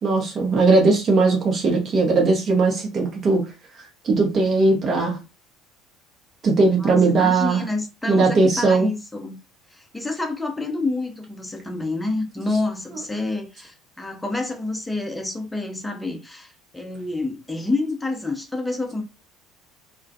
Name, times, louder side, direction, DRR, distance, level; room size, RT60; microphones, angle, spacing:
voice 1, 0.0-3.4 4.0-5.2 6.4-7.6 8.1-8.9, right 3 dB, 35° right, 0.7 m, -19 dB
voice 2, 6.8-9.4 9.7-19.0, left 2 dB, 5° left, 0.7 m, -28 dB
2.3 x 2.2 x 2.6 m
figure-of-eight pair, 60°, 0 cm